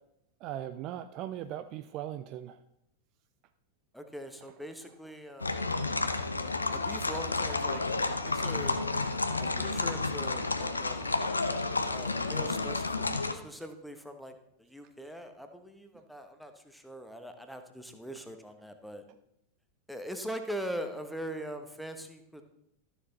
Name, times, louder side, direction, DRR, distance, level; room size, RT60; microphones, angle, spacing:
voice 1, 0.4-2.6 8.5-8.7 9.4-9.5, right 11 dB, 40° right, 11 dB, 0.4 m, -39 dB
voice 2, 3.9-5.6 6.7-7.8 8.2-8.8 9.4-11.2 11.9-14.3 14.6-19.0 19.9-22.4, equal, ahead, 6 dB, 1.0 m, -42 dB
sound 1, 5.4-13.3, left 3 dB, 80° left, 0.7 m, -31 dB
12.5 x 6.7 x 4.0 m, 0.77 s
figure-of-eight pair, 90°, 0 cm